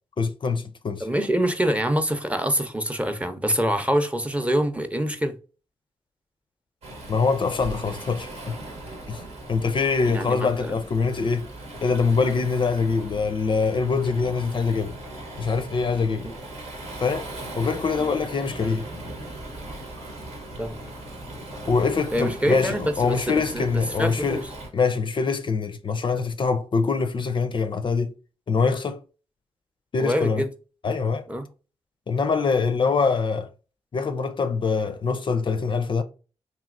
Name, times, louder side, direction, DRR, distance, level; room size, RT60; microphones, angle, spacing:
voice 1, 0.2-1.1 7.1-8.5 9.1-9.2 9.5-11.5 11.8-15.0 15.3-16.3 17.0-17.3 17.6-18.9 21.7-24.4 24.7-28.1 28.5-29.0 29.9-30.4 30.8-31.3 32.1-33.5 33.9-36.0, left 4 dB, 45° left, 0.4 m, -24 dB
voice 2, 1.0-5.4 10.1-10.7 20.6-20.8 22.1-24.4 30.0-30.5 31.3-31.5, equal, 10° right, 0.6 m, -25 dB
Waves surf, 6.8-24.7, right 1 dB, 80° right, 1.0 m, -38 dB
3.0 x 2.8 x 2.4 m
cardioid pair, 50°, 11 cm